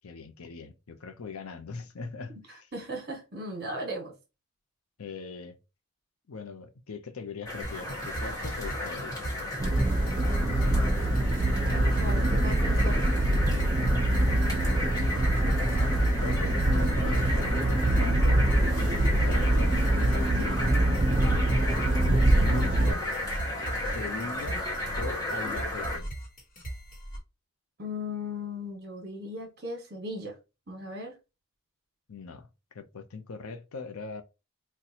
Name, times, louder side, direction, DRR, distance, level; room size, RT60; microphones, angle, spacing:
voice 1, 0.0-2.7 5.0-5.6 6.3-9.2 14.3-14.5 16.1-20.8 22.0-23.1 23.8-24.6 25.0-26.1 32.1-34.2, left 4 dB, 80° left, 0.6 m, -41 dB
voice 2, 2.7-4.1 10.6-13.1 27.8-30.3 30.7-31.1, left 1 dB, 45° right, 1.2 m, -37 dB
sound 1, 7.5-26.0, left 1 dB, 15° left, 1.0 m, -34 dB
sound 2, 7.6-27.2, right 1 dB, 40° left, 1.2 m, -38 dB
sound 3, 9.6-22.9, right 1 dB, 25° right, 0.3 m, -24 dB
4.1 x 2.2 x 2.8 m
head